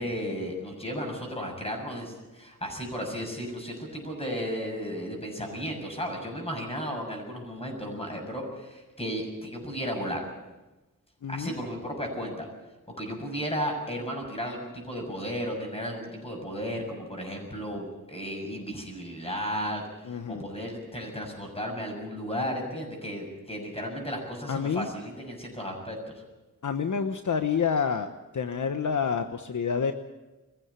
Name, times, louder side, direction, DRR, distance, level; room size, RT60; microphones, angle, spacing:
voice 1, 0.0-10.3 11.3-12.5 13.0-26.1, equal, 20° left, 2 dB, 6.7 m, -34 dB
voice 2, 11.2-11.5 20.1-20.4 24.5-24.9 26.6-28.1 28.3-29.9, left 6 dB, 60° left, 7 dB, 1.1 m, -28 dB
23.0 x 15.5 x 8.3 m, 1.1 s
wide cardioid pair, 115°, 33 cm